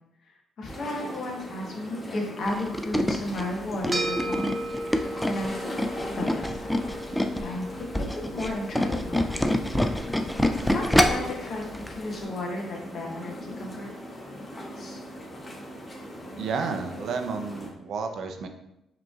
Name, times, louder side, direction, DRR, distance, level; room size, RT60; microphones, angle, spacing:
voice 1, 0.2-4.4 4.8-6.6 7.4-7.7 7.9-9.2 10.7-14.0 14.8-15.0, left 1 dB, 60° left, 0 dB, 1.0 m, -34 dB
sound 1, 0.7-17.7, equal, 25° left, 1.2 m, -40 dB
Tools, 2.5-7.5 7.8-11.3 11.7-11.9 12.2-12.3, left 1 dB, 5° left, 0.3 m, -25 dB
sound 2, 3.9-12.5, right 1 dB, 25° right, 1.0 m, -37 dB
voice 2, 16.4-18.5, right 5 dB, 70° right, 5 dB, 0.5 m, -31 dB
4.9 x 3.1 x 2.3 m, 0.86 s
cardioid pair, 90°, 0 cm